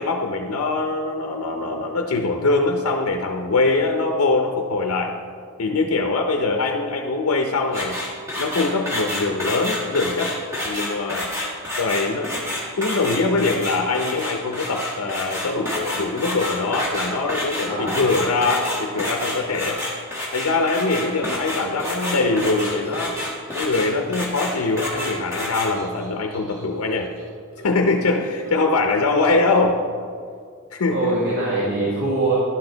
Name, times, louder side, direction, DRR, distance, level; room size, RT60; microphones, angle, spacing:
voice 1, 0.0-5.2 5.6-8.0 8.4-10.3 10.6-11.3 11.8-12.3 12.8-19.8 20.3-23.2 23.5-27.1 27.6-29.8 30.7-31.1, left 3 dB, 75° left, 3 dB, 0.6 m, -22 dB
Using pogo stick, 7.7-25.7, left 1 dB, 15° right, 1.4 m, -29 dB
voice 2, 17.6-18.0 30.8-32.3, right 2 dB, 45° right, -7 dB, 1.7 m, -23 dB
sound 1, 20.5-24.0 24.3-28.8, right 1 dB, 70° right, 1.6 m, -39 dB
11.0 x 6.1 x 3.9 m, 2.1 s
head